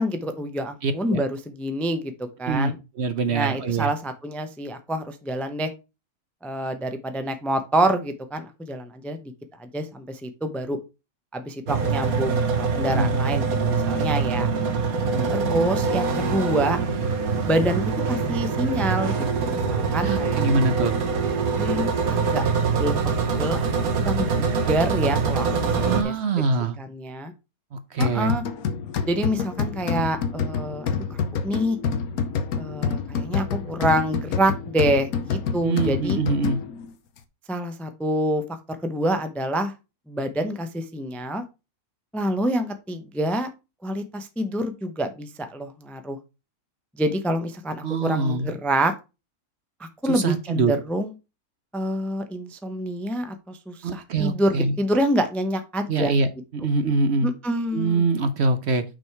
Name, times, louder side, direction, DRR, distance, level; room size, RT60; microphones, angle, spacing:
voice 1, 0.0-2.1 2.4-2.8 3.3-5.7 6.4-9.3 9.6-10.8 11.3-14.5 15.3-16.8 17.4-20.4 21.5-23.7 23.9-26.1 26.8-27.3 28.0-28.4 29.1-31.8 32.6-36.2 37.5-38.4 38.7-39.7 40.1-41.4 42.1-43.5 43.8-46.2 47.0-48.9 49.8-51.1 51.7-56.1 57.2-58.0, right 1 dB, ahead, 7 dB, 0.5 m, -27 dB
voice 2, 0.8-1.2 2.5-2.7 3.0-3.9 12.8-13.1 15.0-15.3 20.0-20.9 25.8-26.8 27.7-28.3 35.6-36.6 47.8-48.5 50.1-50.7 53.8-54.8 55.9-57.3 57.7-58.8, right 3 dB, 55° right, 10 dB, 0.9 m, -24 dB
sound 1, 11.7-26.0, right 5 dB, 80° right, 1.6 m, -24 dB
sound 2, 28.0-36.9, left 6 dB, 85° left, 1.3 m, -28 dB
6.1 x 4.9 x 4.6 m, 0.27 s
omnidirectional pair, 1.5 m